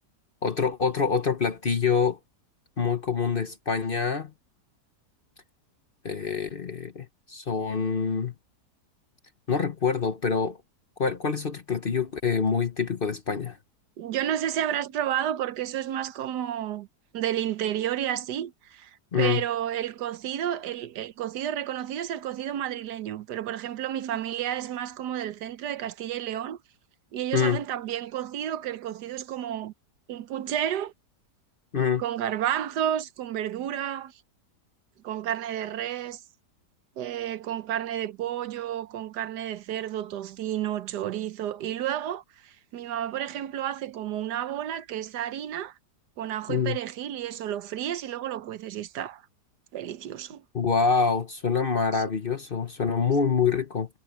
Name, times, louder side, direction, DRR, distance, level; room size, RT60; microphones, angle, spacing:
voice 1, 0.4-2.2 2.8-4.3 6.0-8.3 9.5-10.6 11.0-13.6 19.1-19.4 27.3-27.6 31.7-32.0 46.5-46.8 50.5-53.9, left 5 dB, 40° left, 1.0 m, -26 dB
voice 2, 14.0-16.9 17.1-26.6 27.1-29.7 30.1-30.9 32.0-34.1 35.0-36.2 37.0-45.7 46.2-49.2 49.7-50.4 51.9-52.0 53.3-53.4, right 11 dB, 75° right, 1.3 m, -31 dB
omnidirectional pair, 1.8 m